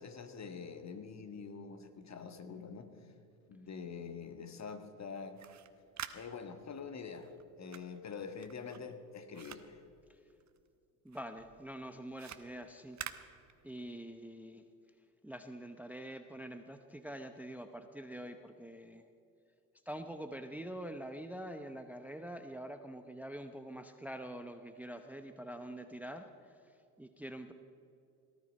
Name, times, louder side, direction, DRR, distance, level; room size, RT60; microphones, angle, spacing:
voice 1, 0.0-2.9 3.5-5.4 6.1-7.3 7.6-9.8, left 5 dB, 35° left, 9 dB, 1.6 m, -45 dB
sound 1, 5.2-10.8 11.1-14.0, right 9 dB, 40° right, 1.1 m, -49 dB
voice 2, 11.0-13.0 13.6-14.7 15.2-19.1 19.9-27.5, right 1 dB, 5° right, 8 dB, 0.8 m, -45 dB
18.0 x 12.5 x 5.4 m, 2.5 s
hypercardioid pair, 65°, 46 cm